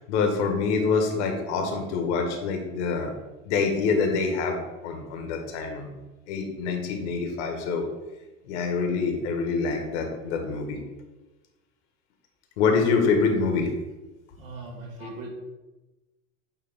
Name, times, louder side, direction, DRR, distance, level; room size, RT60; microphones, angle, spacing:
voice 1, 0.0-3.1 3.4-4.6 4.8-5.9 6.3-7.9 8.5-10.8 12.6-13.7 15.0-15.1, left 4 dB, 55° left, 3 dB, 1.5 m, -25 dB
voice 2, 14.4-15.3, right 2 dB, 75° right, -1 dB, 1.9 m, -39 dB
8.6 x 3.4 x 3.6 m, 1.1 s
figure-of-eight pair, 85°, 40 cm